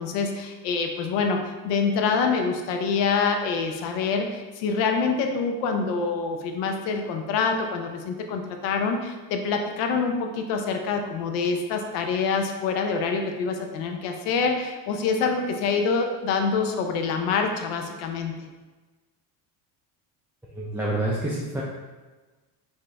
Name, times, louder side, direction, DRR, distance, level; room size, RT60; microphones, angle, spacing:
voice 1, 0.0-18.3, left 5 dB, 75° left, 4 dB, 0.7 m, -26 dB
voice 2, 20.5-21.6, right 1 dB, 5° right, -6 dB, 0.4 m, -27 dB
5.1 x 2.8 x 3.4 m, 1.3 s
cardioid pair, 120°, 43 cm